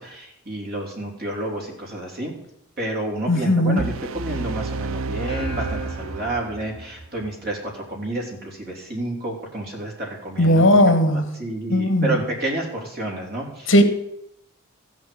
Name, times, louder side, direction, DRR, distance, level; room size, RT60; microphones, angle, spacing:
voice 1, 0.0-2.3 2.8-10.7 11.1-13.7, right 1 dB, 50° right, 3.7 m, -30 dB
voice 2, 3.3-3.9 10.4-11.4 11.7-12.2 13.7-13.8, left 1 dB, 70° left, 1.7 m, -17 dB
sound 1, 3.8-6.8, right 4 dB, 80° right, 0.5 m, -31 dB
sound 2, 5.3-7.9, right 1 dB, 25° left, 3.3 m, -36 dB
14.5 x 6.3 x 8.6 m
head